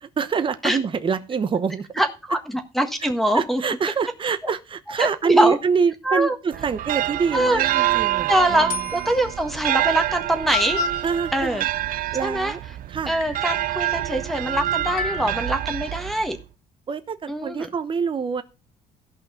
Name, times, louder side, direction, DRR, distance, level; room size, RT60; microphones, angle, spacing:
voice 1, 0.0-1.9 3.0-3.1 3.3-8.8 11.0-11.7 12.1-12.6 12.9-13.2 16.9-18.4, right 6 dB, 30° right, 11 dB, 0.9 m, -25 dB
voice 2, 2.0-3.6 5.0-5.6 6.0-6.3 7.3-7.6 8.3-11.0 11.3-11.6 12.2-12.5 13.1-16.4 17.3-17.7, right 1 dB, ahead, 4 dB, 1.5 m, -23 dB
sound 1, 6.5-16.4, right 14 dB, 55° right, 0.5 m, -27 dB
sound 2, 7.9-8.2 8.7-9.3 10.1-10.2 10.5-11.0 12.5-12.6 13.1-13.6 14.9-15.5, left 7 dB, 55° left, 2.2 m, -30 dB
14.0 x 5.6 x 5.6 m, 0.30 s
cardioid pair, 110°, 17 cm